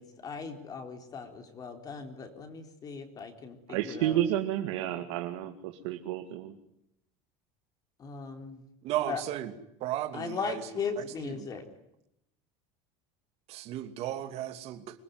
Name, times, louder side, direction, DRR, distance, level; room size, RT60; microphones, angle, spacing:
voice 1, 0.0-4.2 8.0-8.6 9.1-9.2 10.1-11.6, left 5 dB, 25° left, 6 dB, 4.0 m, -38 dB
voice 2, 3.7-6.5, right 12 dB, 80° right, 5 dB, 2.3 m, -31 dB
voice 3, 8.8-9.5 9.8-10.6 11.0-11.5 13.5-15.0, right 13 dB, 45° right, 7 dB, 2.8 m, -35 dB
26.0 x 21.0 x 9.7 m, 0.80 s
cardioid pair, 160°, 15 cm